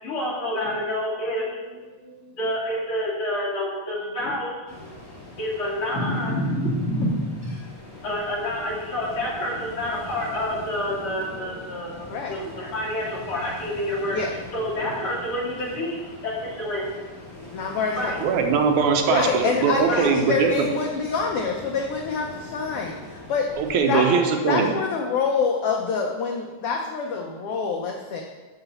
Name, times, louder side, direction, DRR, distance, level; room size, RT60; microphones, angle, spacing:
voice 1, 0.0-4.9 5.4-7.5 8.0-11.9 12.3-14.2 14.5-16.0 16.2-16.8 17.9-18.2 19.9-20.0 23.9-24.2, left 1 dB, 45° left, -5 dB, 2.9 m, -28 dB
Ocean, 4.7-23.8, left 2 dB, 5° left, 2.0 m, -42 dB
voice 2, 17.5-18.1 19.1-23.5 23.9-24.0 24.5-28.2, left 5 dB, 80° left, 1 dB, 1.3 m, -26 dB
voice 3, 18.2-20.7 23.6-24.8, right 6 dB, 75° right, 4 dB, 2.2 m, -21 dB
11.0 x 3.9 x 7.0 m, 1.3 s
omnidirectional pair, 3.5 m